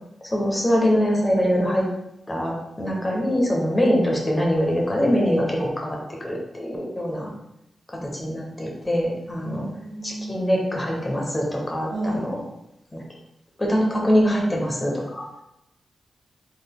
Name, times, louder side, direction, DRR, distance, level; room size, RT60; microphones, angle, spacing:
voice 1, 0.2-1.8 2.3-7.3 7.9-9.7 10.0-12.4 12.9-13.0 13.6-15.3, equal, 20° left, -2 dB, 0.9 m, -23 dB
voice 2, 9.3-10.3 11.9-12.3, right 1 dB, 55° right, -3 dB, 1.3 m, -32 dB
3.8 x 3.3 x 2.3 m, 0.85 s
cardioid pair, 70°, 0 cm